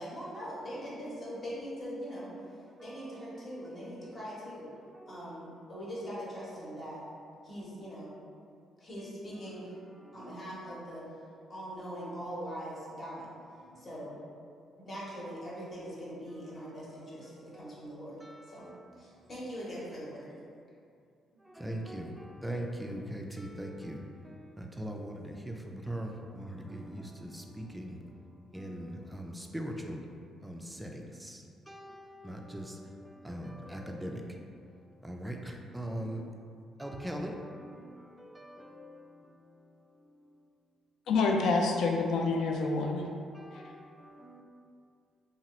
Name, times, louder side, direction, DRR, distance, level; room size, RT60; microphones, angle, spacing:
voice 1, 0.0-2.3 2.8-4.7 5.1-7.0 7.4-8.1 8.8-9.7 10.1-11.1 11.5-13.3 13.8-14.2 14.8-18.6 19.0-20.3 21.3-21.4, equal, 40° left, -7 dB, 1.0 m, -42 dB
voice 2, 2.5-3.0 5.0-5.3 9.4-9.5 9.9-10.4 13.3-14.0 17.5-17.8 18.2-19.2 21.4-28.0 28.5-30.0 30.4-34.4 35.0-36.2 36.8-39.4 43.3-44.4, right 1 dB, 10° right, 2 dB, 0.3 m, -41 dB
voice 3, 41.1-43.0, left 3 dB, 75° left, 1 dB, 0.3 m, -27 dB
2.8 x 2.3 x 3.0 m, 2.4 s
cardioid pair, 90°, 0 cm